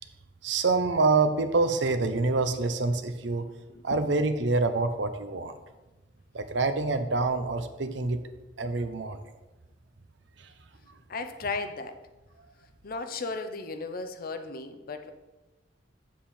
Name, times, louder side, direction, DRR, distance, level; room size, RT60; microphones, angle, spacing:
voice 1, 0.4-3.5 3.8-5.5 6.3-8.2 8.6-9.2, right 3 dB, 75° right, 9 dB, 0.7 m, -26 dB
voice 2, 3.7-4.1 11.1-12.0 12.8-15.1, left 3 dB, 55° left, 8 dB, 0.7 m, -35 dB
7.4 x 7.4 x 4.3 m, 1.1 s
head